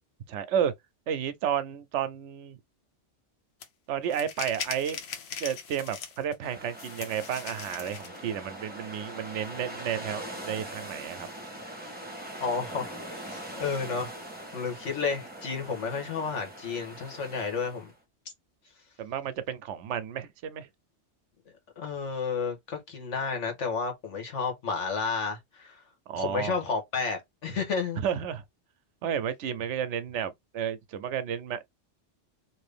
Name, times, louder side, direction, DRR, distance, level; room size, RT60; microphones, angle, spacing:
voice 1, 0.3-0.7 1.1-2.6 3.9-5.0 5.4-11.3 19.0-20.7 26.1-26.6 28.0-28.4 29.0-31.6, right 9 dB, 80° right, 0.9 m, -32 dB
sound 1, 3.6-3.7 4.1-6.3 6.7-8.2, left 6 dB, 65° left, 0.9 m, -39 dB
sound 2, 6.4-17.9, right 1 dB, 10° right, 1.1 m, -42 dB
voice 2, 12.4-14.1 14.5-17.9 21.8-25.8 26.1-28.0, left 5 dB, 90° left, 1.6 m, -31 dB
2.9 x 2.7 x 3.3 m
omnidirectional pair, 1.2 m